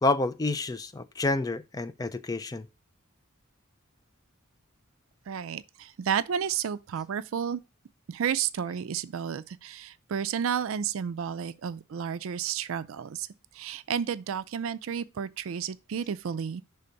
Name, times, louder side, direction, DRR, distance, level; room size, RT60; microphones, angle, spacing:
voice 1, 0.0-2.7, left 2 dB, 20° left, 0.4 m, -28 dB
voice 2, 5.3-7.6 8.1-13.3 13.5-16.6, right 8 dB, 70° right, 0.4 m, -31 dB
5.7 x 3.4 x 5.1 m
head